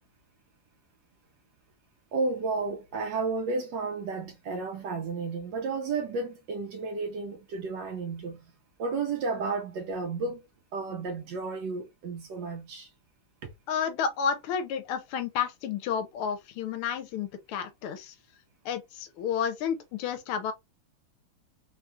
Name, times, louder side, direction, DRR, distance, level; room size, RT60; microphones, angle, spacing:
voice 1, 2.1-8.5 8.8-10.4 10.7-12.9 13.4-13.5, right 4 dB, 75° right, 1.0 m, -32 dB
voice 2, 13.7-18.1 18.6-20.5, left 7 dB, 80° left, 1.5 m, -31 dB
3.6 x 2.3 x 2.5 m
omnidirectional pair, 2.4 m